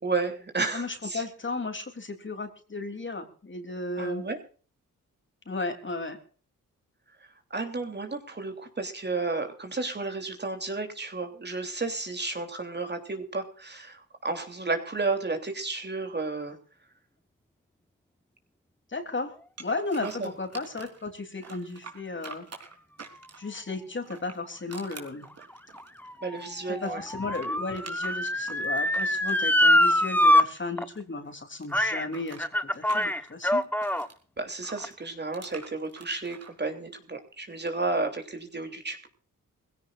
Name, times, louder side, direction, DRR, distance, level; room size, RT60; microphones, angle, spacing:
voice 1, 0.0-1.2 4.0-4.4 7.5-16.6 20.0-20.3 26.2-27.1 34.4-39.1, right 3 dB, 30° right, 5 dB, 3.2 m, -32 dB
voice 2, 0.7-4.3 5.5-6.2 18.9-19.3 19.6-22.4 23.4-25.3 26.8-32.4 32.7-33.6, left 3 dB, 35° left, 6 dB, 3.4 m, -34 dB
sound 1, 19.6-21.0 21.4-23.6 24.0-26.5 26.8-31.0 31.2-34.2 34.6-36.5, right 5 dB, 45° right, 3.8 m, -46 dB
Motor vehicle (road) / Siren, 25.2-30.4 30.8-30.9 31.7-32.1 32.4-34.1 34.8-34.9, left 1 dB, 5° left, 1.1 m, -24 dB
21.5 x 16.5 x 2.5 m, 0.40 s
cardioid pair, 65°, 34 cm